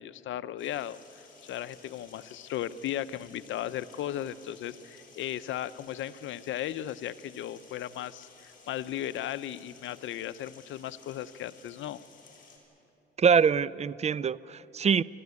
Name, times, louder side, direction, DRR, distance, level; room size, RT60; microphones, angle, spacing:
voice 1, 0.0-12.0, left 11 dB, 75° left, 14 dB, 0.7 m, -36 dB
sound 1, 0.6-12.6, left 4 dB, 45° left, 6.6 m, -56 dB
voice 2, 13.2-15.0, right 6 dB, 35° right, 19 dB, 0.5 m, -24 dB
29.5 x 14.0 x 9.6 m, 2.9 s
cardioid pair, 90°, 20 cm